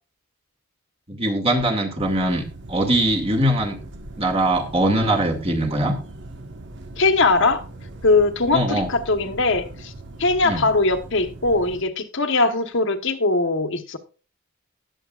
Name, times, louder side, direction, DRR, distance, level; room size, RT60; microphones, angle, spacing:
voice 1, 1.1-2.4 2.7-3.8 4.2-5.9 8.5-8.9 10.4-10.7, right 1 dB, 30° right, 2.3 m, -21 dB
sound 1, 2.0-11.8, right 2 dB, 60° right, 1.4 m, -40 dB
voice 2, 7.0-7.6 8.0-9.9 10.2-14.0, left 3 dB, 65° left, 1.3 m, -20 dB
19.5 x 7.7 x 2.5 m
head